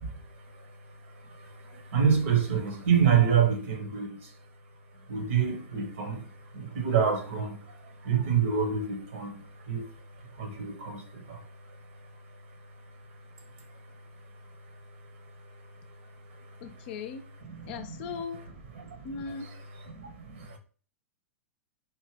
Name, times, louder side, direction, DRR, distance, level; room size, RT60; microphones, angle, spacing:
voice 1, 0.0-4.3 5.1-12.4 13.7-13.8 14.4-16.7 17.5-17.9 18.8-19.1 19.9-20.6, right 7 dB, 60° right, 1.0 m, -29 dB
voice 2, 16.6-17.3 17.6-18.4 19.0-19.5, left 5 dB, 45° left, 0.5 m, -38 dB
4.5 x 2.9 x 3.2 m
figure-of-eight pair, 100°, 7 cm